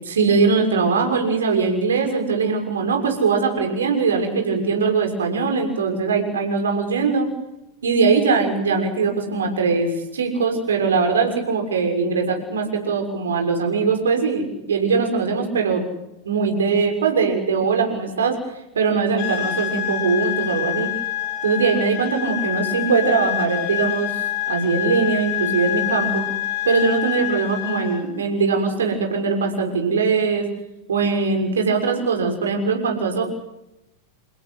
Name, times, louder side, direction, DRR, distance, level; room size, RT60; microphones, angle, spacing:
voice 1, 0.0-7.3 7.8-15.8 16.2-18.4 18.7-20.9 21.4-26.3 26.6-30.5 30.9-33.2, right 4 dB, 65° right, 4 dB, 6.5 m, -21 dB
sound 1, 19.2-28.1, left 13 dB, 50° left, 5.9 m, -26 dB
29.5 x 16.5 x 9.8 m, 0.91 s
figure-of-eight pair, 90°, 0 cm